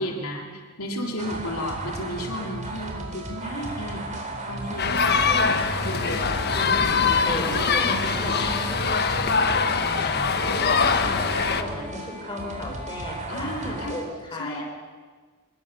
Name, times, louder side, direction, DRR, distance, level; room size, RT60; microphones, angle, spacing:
voice 1, 0.0-4.1 4.5-5.6 5.8-6.3 6.6-8.4 9.7-10.4 13.3-14.0 14.4-14.6, equal, 85° left, 1 dB, 3.7 m, -34 dB
sound 1, 1.2-14.0, right 2 dB, 35° right, 3.9 m, -34 dB
sound 2, 4.8-11.6, left 5 dB, 50° left, 1.2 m, -23 dB
Guitar, 6.0-12.6, left 1 dB, 55° right, 3.1 m, -41 dB
voice 2, 6.5-6.9 7.2-8.8 10.4-14.6, left 1 dB, 20° left, -1 dB, 5.8 m, -35 dB
24.5 x 21.5 x 7.0 m, 1.5 s
head